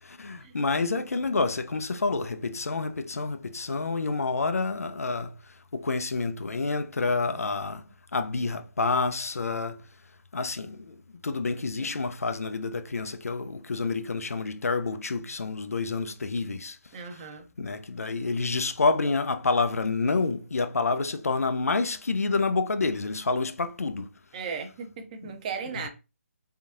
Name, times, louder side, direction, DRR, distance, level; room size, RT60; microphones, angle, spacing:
voice 1, 0.0-7.8 8.1-9.8 10.3-16.8 17.6-24.1 25.2-25.3, left 3 dB, 85° left, 0.5 m, -28 dB
voice 2, 16.9-17.4 24.3-25.9, right 5 dB, 30° right, 0.6 m, -37 dB
3.5 x 2.3 x 2.7 m
figure-of-eight pair, 150°, 8 cm